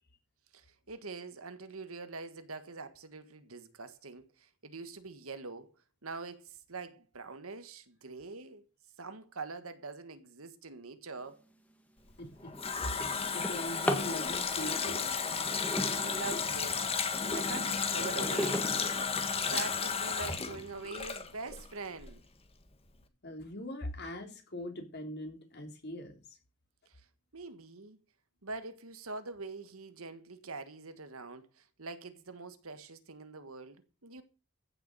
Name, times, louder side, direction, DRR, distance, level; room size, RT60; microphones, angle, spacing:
voice 1, 0.5-5.7 6.0-8.6 9.0-11.4 15.7-16.8 17.3-18.7 19.3-22.2 26.9-27.0 27.3-28.0 28.4-34.2, right 3 dB, 75° right, 1.6 m, -44 dB
Drawer open or close, 11.5-11.7 12.2-14.2 15.2-16.8 17.4-19.8 20.5-20.6 21.0-21.1 21.5-21.9, left 1 dB, 5° left, 1.8 m, -38 dB
Water tap faucet, 12.1-21.7 22.0-22.1, left 5 dB, 25° left, 1.6 m, -33 dB
voice 2, 12.2-13.1 13.3-15.1 23.2-26.4, left 1 dB, 50° left, 3.7 m, -41 dB
15.0 x 6.9 x 6.8 m
head